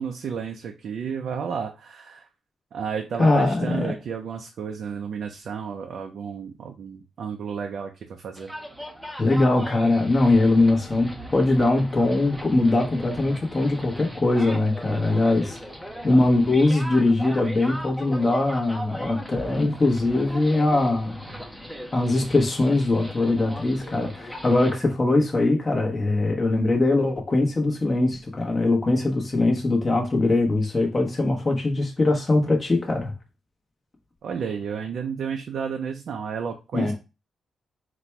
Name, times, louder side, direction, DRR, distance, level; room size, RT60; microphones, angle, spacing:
voice 1, 0.0-2.3 2.7-8.5 34.2-36.9, right 6 dB, 65° right, 0.5 m, -32 dB
voice 2, 3.2-3.9 9.2-15.6 16.0-21.2 21.9-33.1 36.7-36.9, left 2 dB, 25° left, 0.9 m, -21 dB
sound 1, 8.4-24.8, equal, ahead, 0.6 m, -38 dB
4.1 x 2.2 x 4.4 m
cardioid pair, 130°, 0 cm